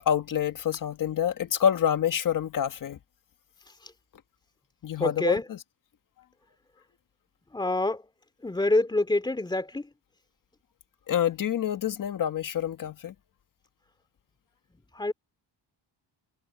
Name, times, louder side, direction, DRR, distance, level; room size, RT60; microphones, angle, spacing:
voice 1, 0.0-3.0 4.8-5.6 11.1-13.1, left 9 dB, 45° left, 1.8 m, -27 dB
voice 2, 5.0-5.5 7.5-8.1 8.4-9.9 14.9-15.1, left 2 dB, 10° left, 2.8 m, -26 dB
wide cardioid pair, 175°, 44 cm